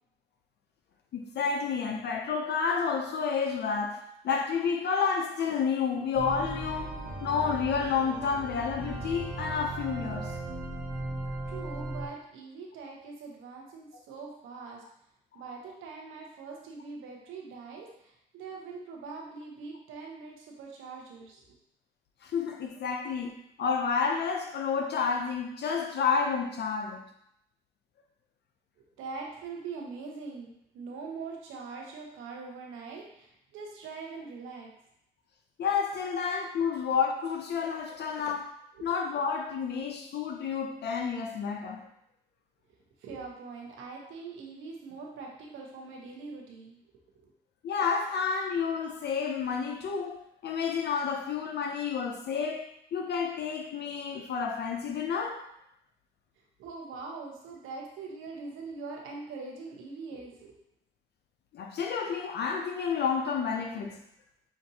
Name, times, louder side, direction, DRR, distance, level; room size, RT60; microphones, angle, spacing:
voice 1, 1.1-10.4 15.3-15.4 22.2-23.3 23.6-27.1 35.6-38.5 38.8-41.9 47.6-55.4 61.5-64.0, left 6 dB, 55° left, 0.5 m, -30 dB
sound 1, 6.1-12.1, right 2 dB, 45° right, 1.1 m, -37 dB
voice 2, 11.5-14.8 15.3-21.4 29.0-34.7 36.6-36.8 38.7-38.9 43.0-46.8 47.1-47.3 56.6-60.5, right 4 dB, 90° right, 1.0 m, -42 dB
5.9 x 2.6 x 2.8 m
cardioid pair, 90°, 20 cm